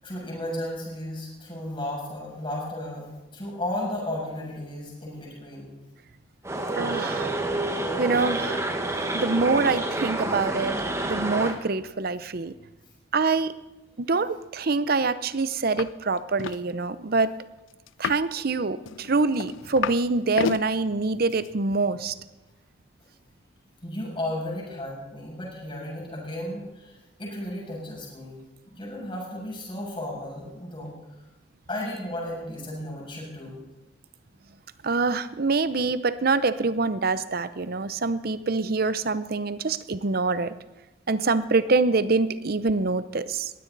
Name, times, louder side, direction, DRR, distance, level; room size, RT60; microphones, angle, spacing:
voice 1, 0.0-5.7 23.8-28.4 28.7-30.9 31.7-33.6, left 1 dB, 25° left, -4 dB, 6.7 m, -34 dB
sound 1, 6.4-11.6, right 2 dB, 15° right, 1.3 m, -28 dB
voice 2, 6.8-7.4 8.0-8.6 9.1-10.8 11.0-12.5 13.1-13.5 14.0-17.4 18.0-22.1 34.8-40.5 41.1-43.5, right 3 dB, 50° right, 14 dB, 0.7 m, -25 dB
sound 2, 15.8-15.9 16.2-16.6 17.9-18.3 18.9-20.0 20.3-20.6 21.3-21.5, left 6 dB, 85° left, 0.4 m, -30 dB
20.5 x 16.0 x 4.1 m, 1.1 s
head